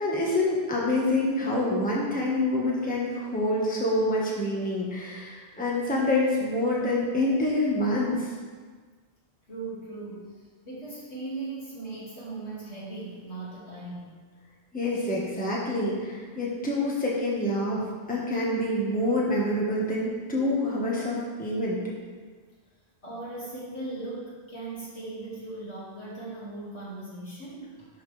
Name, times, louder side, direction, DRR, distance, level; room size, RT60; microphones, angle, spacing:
voice 1, 0.0-8.3 14.7-17.8 18.1-21.8, left 1 dB, 10° left, -5 dB, 1.4 m, -26 dB
voice 2, 9.5-10.3 10.6-14.1 23.0-27.9, right 2 dB, 70° left, -7 dB, 2.6 m, -38 dB
11.5 x 5.7 x 3.4 m, 1.5 s
omnidirectional pair, 1.2 m